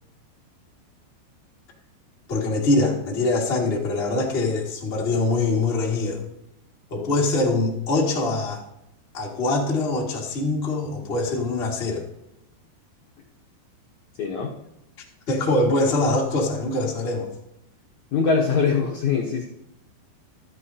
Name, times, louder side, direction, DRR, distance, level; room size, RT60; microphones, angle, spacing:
voice 1, 2.3-6.2 6.9-8.6 9.1-12.0 15.3-17.3, left 2 dB, 55° left, -2 dB, 0.6 m, -23 dB
voice 2, 14.2-14.5 18.1-19.5, left 5 dB, 75° left, -1 dB, 1.7 m, -22 dB
15.5 x 13.0 x 2.8 m, 0.85 s
omnidirectional pair, 5.0 m